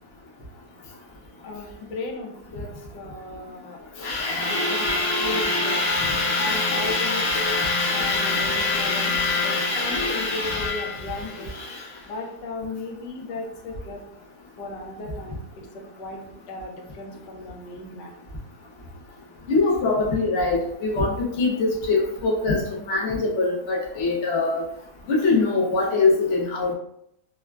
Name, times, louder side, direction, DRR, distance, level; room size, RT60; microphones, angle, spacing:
voice 1, 1.4-3.8 4.2-5.8 6.4-7.5 7.9-9.1 9.4-11.5 12.0-14.0 14.6-18.1, left 2 dB, 85° left, 1 dB, 1.2 m, -35 dB
voice 2, 4.0-11.9 19.5-24.6 25.1-26.7, left 3 dB, 55° left, -4 dB, 0.8 m, -23 dB
3.4 x 2.1 x 2.3 m, 0.74 s
omnidirectional pair, 1.8 m